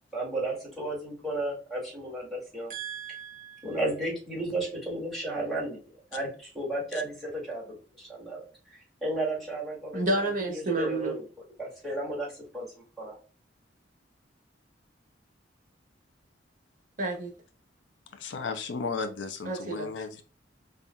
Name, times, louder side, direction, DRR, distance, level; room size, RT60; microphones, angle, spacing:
voice 1, 0.1-2.7 3.6-5.8 6.1-11.2 11.6-12.7 13.0-13.2, right 1 dB, ahead, -4 dB, 2.0 m, -33 dB
voice 2, 2.7-3.8 9.9-11.2 17.0-17.3 19.4-19.9, right 2 dB, 50° right, 1 dB, 1.2 m, -31 dB
voice 3, 18.1-20.2, left 4 dB, 85° left, 8 dB, 0.5 m, -34 dB
5.4 x 2.5 x 2.2 m, 0.37 s
head